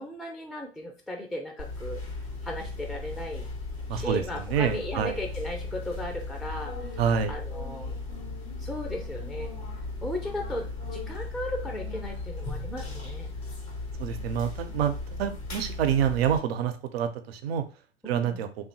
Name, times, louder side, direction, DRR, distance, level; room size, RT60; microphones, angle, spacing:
voice 1, 0.0-2.0 2.4-3.5 3.9-7.0 7.3-8.0 8.6-9.5 10.0-13.3 18.0-18.4, left 1 dB, ahead, 2 dB, 0.4 m, -36 dB
sound 1, 1.6-16.4, left 3 dB, 90° left, 1.0 m, -36 dB
voice 2, 3.9-5.2 7.0-7.4 14.0-14.9 15.2-17.6 18.0-18.5, right 8 dB, 75° right, 10 dB, 0.5 m, -27 dB
2.8 x 2.2 x 2.6 m, 0.35 s
hypercardioid pair, 85°, 31 cm